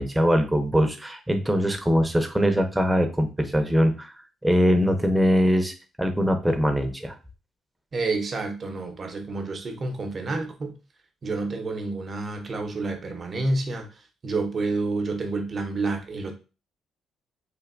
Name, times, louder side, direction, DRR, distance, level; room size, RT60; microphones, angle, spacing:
voice 1, 0.0-4.1 4.4-7.1, equal, 10° right, 0.6 m, -22 dB
voice 2, 7.9-10.7 11.2-13.9 14.2-16.3, right 3 dB, 45° right, 0.7 m, -29 dB
3.3 x 2.6 x 2.5 m
cardioid pair, 90°, 0 cm